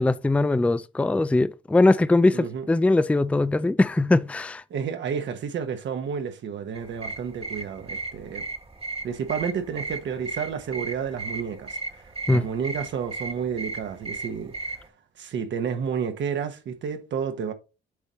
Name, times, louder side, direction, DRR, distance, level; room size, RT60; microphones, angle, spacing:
voice 1, 0.0-4.6 12.3-12.4, left 2 dB, 5° left, 0.4 m, -21 dB
voice 2, 2.3-2.7 4.7-8.4 9.0-14.8 15.2-17.5, right 7 dB, 65° right, 1.3 m, -31 dB
sound 1, 6.8-14.9, right 3 dB, 30° right, 1.5 m, -36 dB
8.1 x 5.4 x 3.1 m
cardioid pair, 90°, 20 cm